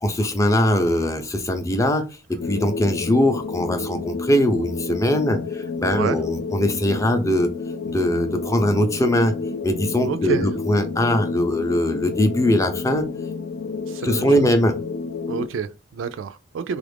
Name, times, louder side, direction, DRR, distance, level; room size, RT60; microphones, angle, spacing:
voice 1, 0.0-7.5 7.9-9.3 9.6-13.1 14.0-14.8, left 1 dB, 15° left, 0.5 m, -21 dB
sound 1, 2.4-15.5, left 4 dB, 80° left, 0.4 m, -30 dB
voice 2, 5.9-6.2 10.0-10.5 13.9-14.5 15.3-16.8, right 6 dB, 85° right, 0.3 m, -28 dB
3.4 x 2.4 x 3.4 m
head